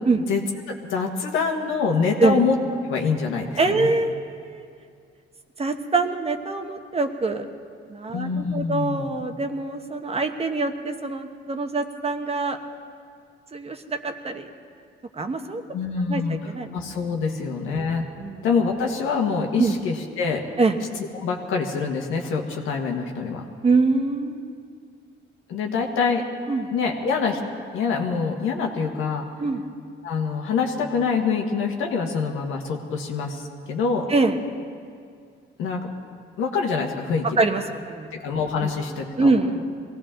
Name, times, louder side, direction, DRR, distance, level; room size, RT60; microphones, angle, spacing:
voice 1, 0.7-2.6 2.8-3.9 8.1-9.0 15.7-16.4 16.7-18.0 18.4-20.4 21.1-23.4 25.5-26.2 26.7-27.4 27.7-29.3 30.0-34.1 35.6-35.9 36.4-37.4 38.1-39.3, left 5 dB, 90° left, 2 dB, 1.7 m, -25 dB
voice 2, 3.6-4.7 5.6-7.5 7.9-12.6 13.5-14.5 15.1-15.6 16.1-16.7 17.3-17.4 18.2-18.4 19.6-19.8 20.6-20.8 23.6-24.7 26.5-26.7 29.4-29.6 34.1-34.4 37.4-38.1 38.6-38.7 39.2-39.6, right 3 dB, 30° right, 6 dB, 1.1 m, -24 dB
21.5 x 17.0 x 3.8 m, 2.2 s
cardioid pair, 90°, 20 cm